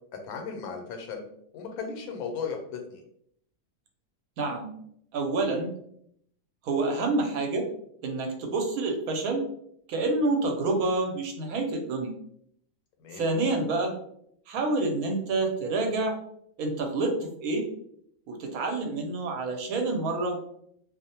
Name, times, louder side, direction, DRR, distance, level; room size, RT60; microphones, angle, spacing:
voice 1, 0.1-1.2 1.5-3.0 13.0-13.2, left 5 dB, 90° left, 3 dB, 1.1 m, -36 dB
voice 2, 4.4-4.7 5.1-5.7 6.6-7.6 8.0-9.4 9.9-12.1 13.1-13.9 14.5-16.2 16.6-17.6 18.3-20.4, right 2 dB, 80° right, 3 dB, 1.0 m, -28 dB
2.5 x 2.0 x 2.7 m, 0.70 s
omnidirectional pair, 1.5 m